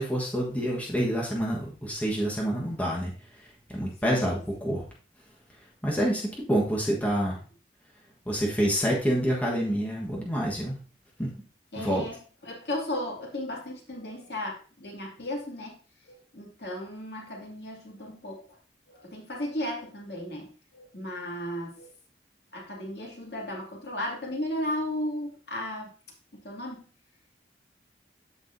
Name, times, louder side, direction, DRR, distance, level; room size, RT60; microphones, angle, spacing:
voice 1, 0.0-4.8 5.8-7.4 8.2-10.8 11.2-11.3 11.8-12.1, equal, 10° left, -3 dB, 1.4 m, -27 dB
voice 2, 4.0-4.4 11.7-12.2 12.4-15.7 16.0-18.4 18.9-21.9 22.5-25.9 26.3-26.8, left 1 dB, 70° left, -2 dB, 2.5 m, -35 dB
14.0 x 4.7 x 2.7 m, 0.38 s
head